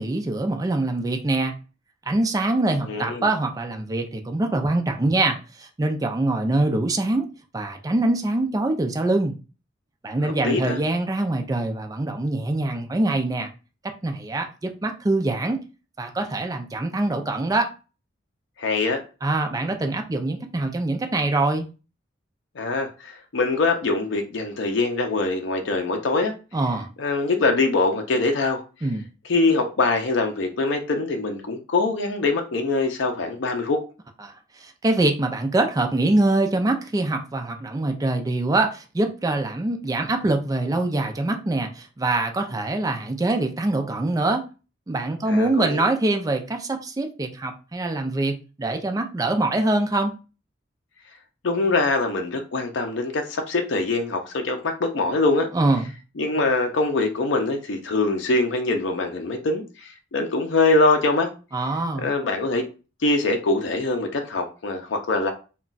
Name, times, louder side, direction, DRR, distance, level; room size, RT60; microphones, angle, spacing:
voice 1, 0.0-1.5 2.1-7.3 7.5-9.3 10.0-13.5 14.0-15.6 16.0-17.7 19.2-21.7 26.5-26.9 28.8-29.1 34.2-34.3 34.8-44.5 44.9-50.1 55.5-55.9 61.5-62.1, right 2 dB, 20° right, 0.4 m, -24 dB
voice 2, 2.8-3.3 10.2-10.8 18.6-19.0 22.6-26.3 27.0-28.6 29.2-33.8 45.3-45.9 51.4-55.5 56.2-61.3 62.0-62.6 63.0-65.3, left 3 dB, 75° left, 0.5 m, -23 dB
2.3 x 2.2 x 3.9 m
head